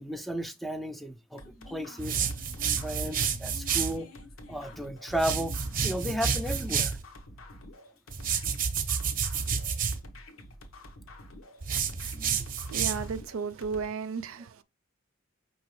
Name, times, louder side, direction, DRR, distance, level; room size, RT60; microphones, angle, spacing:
voice 1, 0.0-2.2 2.8-4.1 4.5-5.6 5.8-7.0 12.1-12.4, equal, ahead, 0.3 m, -34 dB
sound 1, 1.4-13.9, left 1 dB, 80° left, 1.1 m, -48 dB
sound 2, 2.0-4.0 5.1-7.0 8.1-10.0 11.6-13.2, right 6 dB, 40° right, 0.6 m, -30 dB
voice 2, 12.7-14.6, right 5 dB, 85° right, 0.4 m, -34 dB
5.7 x 2.8 x 3.0 m
head